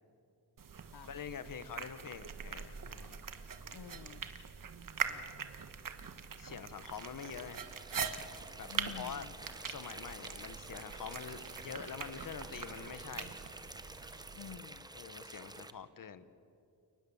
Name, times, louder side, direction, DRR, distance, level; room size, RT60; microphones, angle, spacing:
sound 1, 0.6-14.6, right 6 dB, 50° right, 1.3 m, -43 dB
voice 1, 1.0-3.2 6.4-7.6 8.6-8.7 9.0-9.3 9.7-13.3 14.9-16.3, left 7 dB, 55° left, 13 dB, 1.1 m, -45 dB
voice 2, 3.7-4.3 5.0-5.3 8.7-9.3 14.3-14.9, left 9 dB, 75° left, 15 dB, 0.8 m, -49 dB
sound 2, 6.8-15.7, right 2 dB, 10° right, 0.7 m, -50 dB
29.5 x 19.0 x 7.1 m, 2.6 s
wide cardioid pair, 155°, 41 cm